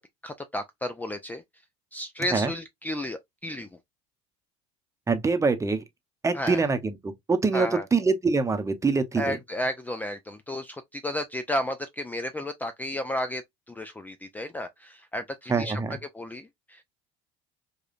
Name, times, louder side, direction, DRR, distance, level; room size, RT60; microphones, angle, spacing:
voice 1, 0.2-1.4 1.9-3.7 6.3-6.7 7.5-7.9 9.2-13.4 13.7-15.8 16.1-16.8, left 1 dB, 10° left, 0.4 m, -32 dB
voice 2, 5.1-5.8 6.2-9.4 15.5-16.0, right 4 dB, 20° right, 0.8 m, -25 dB
4.8 x 2.3 x 2.4 m
hypercardioid pair, 70°, 16 cm